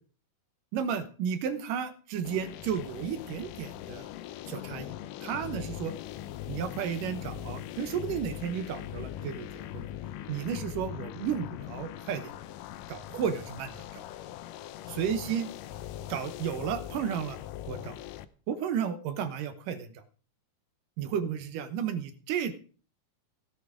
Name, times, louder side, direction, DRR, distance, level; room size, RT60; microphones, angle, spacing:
voice 1, 0.7-4.1 4.5-4.9 5.2-5.9 6.5-9.9 10.3-12.3 12.9-14.0 14.9-15.5 16.1-17.4 17.7-18.0 18.5-20.0 21.0-22.5, right 8 dB, 75° right, 11 dB, 2.6 m, -33 dB
sound 1, 2.2-18.2, left 12 dB, 80° left, 2.3 m, -41 dB
16.0 x 8.4 x 4.9 m, 0.40 s
omnidirectional pair, 4.0 m